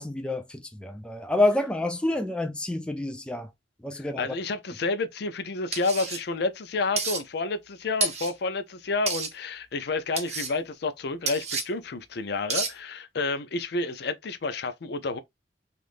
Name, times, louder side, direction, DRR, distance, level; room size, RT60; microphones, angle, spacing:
voice 1, 0.0-3.5 3.8-4.3, left 2 dB, 5° left, 0.3 m, -28 dB
voice 2, 4.0-15.2, left 3 dB, 65° left, 0.5 m, -30 dB
sound 1, 5.7-6.2 7.0-7.2 8.0-8.3 9.1-9.3 10.2-10.5 11.3-11.6 12.5-12.7, right 4 dB, 40° right, 0.7 m, -29 dB
3.4 x 2.4 x 2.5 m
head